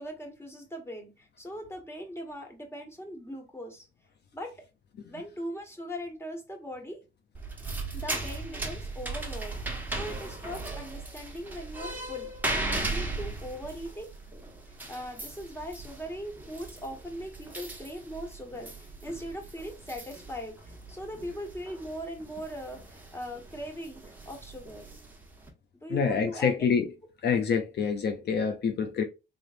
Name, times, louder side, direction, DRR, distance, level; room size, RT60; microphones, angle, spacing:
voice 1, 0.0-3.9 4.3-4.6 5.1-7.0 7.9-14.1 14.9-24.8 25.7-26.6 27.3-27.4, equal, 10° left, 1.6 m, -40 dB
sound 1, 7.3-25.5, right 2 dB, 10° right, 1.2 m, -38 dB
voice 2, 25.9-26.9 27.2-29.0, left 6 dB, 55° left, 0.6 m, -26 dB
3.8 x 3.3 x 2.6 m
cardioid pair, 90°, 20 cm